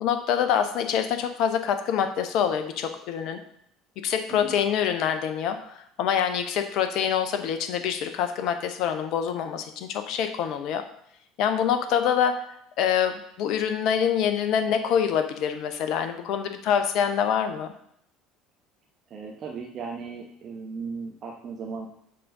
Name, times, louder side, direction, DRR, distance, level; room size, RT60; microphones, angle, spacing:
voice 1, 0.0-3.4 4.0-10.8 11.4-12.4 12.8-17.7, left 8 dB, 55° left, 7 dB, 0.6 m, -25 dB
voice 2, 19.1-21.9, right 5 dB, 40° right, -1 dB, 1.0 m, -36 dB
7.7 x 3.8 x 5.2 m, 0.71 s
figure-of-eight pair, 60°, 0 cm